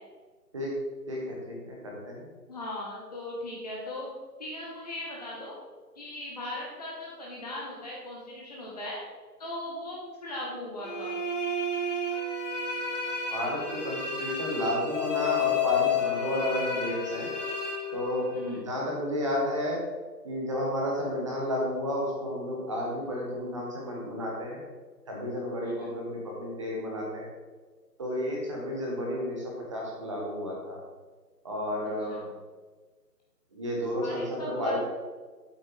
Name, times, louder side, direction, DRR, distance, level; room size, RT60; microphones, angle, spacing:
voice 1, 1.1-2.3 13.3-17.3 17.9-19.8 20.2-24.6 25.1-27.3 28.0-30.8 31.4-32.2 33.5-34.8, equal, 20° right, -2 dB, 1.4 m, -32 dB
voice 2, 2.5-4.1 4.4-5.6 6.0-9.0 9.4-11.2 18.3-18.6 25.6-25.9 32.1-32.3 34.0-34.8, left 1 dB, 25° left, -4 dB, 1.2 m, -38 dB
sound 1, 10.8-18.6, left 4 dB, 45° left, 1.7 m, -31 dB
8.4 x 6.4 x 4.8 m, 1.4 s
figure-of-eight pair, 155°, 49 cm